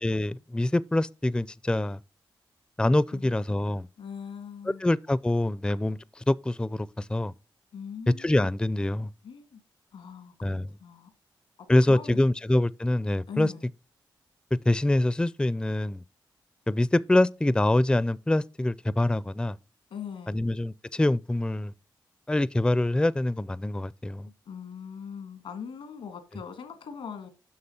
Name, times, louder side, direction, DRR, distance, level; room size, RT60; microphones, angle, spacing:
voice 1, 0.0-2.0 2.8-3.9 4.8-7.3 8.2-9.1 10.4-10.7 11.7-13.5 14.7-16.0 16.7-19.6 20.3-21.7 22.3-24.3, left 1 dB, 10° left, 0.4 m, -25 dB
voice 2, 4.0-4.8 7.7-8.5 9.2-9.6 9.9-11.1 11.6-12.3 13.3-13.7 19.9-20.4 24.3-27.3, left 7 dB, 90° left, 1.9 m, -41 dB
9.6 x 6.3 x 2.8 m
supercardioid pair, 45°, 9 cm